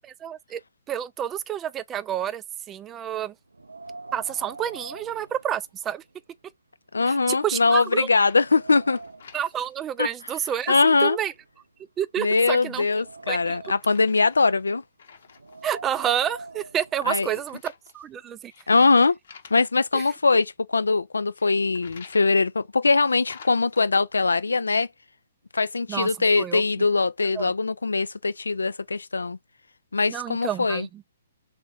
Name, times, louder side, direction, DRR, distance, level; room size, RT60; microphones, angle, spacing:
voice 1, 0.2-0.6 0.9-3.3 4.1-6.0 7.1-7.2 7.4-8.1 9.3-11.3 12.0-12.8 13.3-13.6 15.6-18.5 19.9-20.0 25.9-26.1 26.4-26.6 27.3-27.5 30.1-31.0, right 10 dB, 20° right, 0.3 m, -29 dB
Wind, 3.5-6.1 6.5-6.6 7.3-7.4 7.8-9.5 10.3-11.8 12.4-14.0 15.3-17.4, right 3 dB, 90° right, 0.4 m, -44 dB
voice 2, 6.9-9.0 10.0-10.1 10.7-11.2 12.2-14.8 17.1-17.3 18.7-19.2 19.5-24.9 25.5-29.4 29.9-30.9, left 4 dB, 85° left, 0.3 m, -22 dB
sound 1, 7.8-8.5 8.8-9.8 10.4-11.2 12.2-13.0 13.3-15.7 16.0-16.5 17.3-19.9 21.3-22.4 23.1-23.9, left 6 dB, 65° left, 0.8 m, -50 dB
3.6 x 2.5 x 3.4 m
figure-of-eight pair, 125°, 0 cm